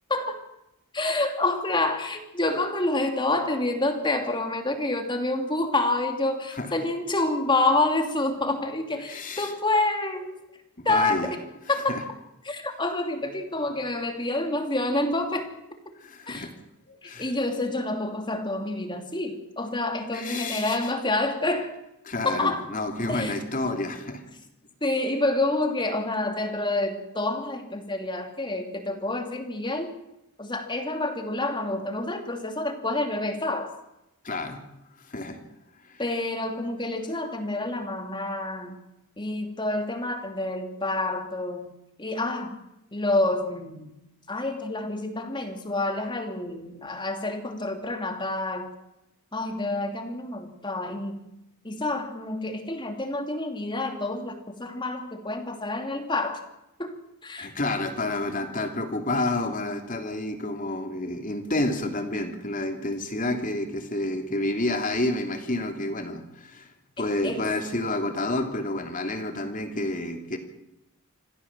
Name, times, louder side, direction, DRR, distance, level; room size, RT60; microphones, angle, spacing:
voice 1, 0.1-0.4 0.9-10.4 10.8-11.4 11.7-12.0 12.4-15.5 16.3-16.5 17.0-21.7 22.2-22.7 23.1-23.4 24.8-30.0 30.4-33.7 36.0-38.8 39.2-41.7 42.0-42.6 42.9-43.9 44.3-48.7 49.3-51.2 51.6-56.4 56.8-57.5 67.2-67.5, left 2 dB, 20° left, 5 dB, 2.8 m, -28 dB
voice 2, 9.1-9.5 10.8-11.3 11.9-12.0 16.0-16.5 16.9-17.3 20.1-20.8 22.0-24.2 34.2-34.6 35.1-35.4 35.9-36.0 57.4-70.4, left 2 dB, 35° left, 5 dB, 3.2 m, -29 dB
27.5 x 15.5 x 7.6 m, 0.91 s
head